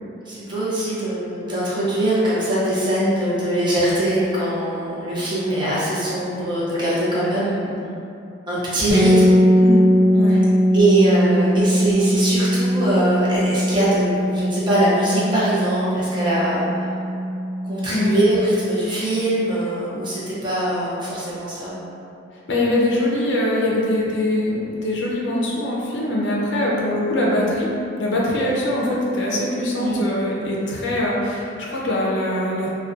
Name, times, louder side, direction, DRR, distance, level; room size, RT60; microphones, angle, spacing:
voice 1, 0.3-7.7 8.5-9.4 10.3-10.4 10.7-16.9 17.6-21.7 29.8-30.0, right 1 dB, 25° right, -9 dB, 0.6 m, -22 dB
sound 1, 8.9-18.6, equal, 65° right, 0.7 m, -20 dB
voice 2, 9.6-10.4 17.9-18.1 22.5-27.7 28.0-32.7, left 1 dB, 65° left, -4 dB, 0.4 m, -22 dB
2.5 x 2.1 x 2.3 m, 2.6 s
head